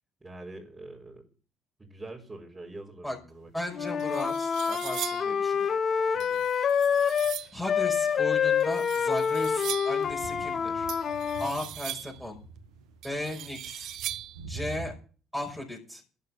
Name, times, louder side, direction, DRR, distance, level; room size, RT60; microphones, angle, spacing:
voice 1, 0.2-1.3 1.8-3.5 6.1-6.4, right 2 dB, 20° right, -5 dB, 5.0 m, -44 dB
voice 2, 3.5-5.7 7.5-10.9 11.4-12.4 13.0-14.0 14.5-15.0 15.3-16.0, left 1 dB, ahead, -1 dB, 5.5 m, -36 dB
sound 1, 3.5-3.6 4.0-5.4 6.2-7.6 8.6-10.1 10.9-12.3 13.0-14.4, right 12 dB, 60° right, 0.8 m, -39 dB
Wind instrument woodwind instrument, 3.7-7.4 7.6-11.5, left 7 dB, 45° left, 1.3 m, -27 dB
sound 2, 7.1-7.6 8.5-15.0, right 4 dB, 90° right, 1.6 m, -46 dB
13.0 x 6.7 x 9.0 m, 0.38 s
hypercardioid pair, 55°, 0 cm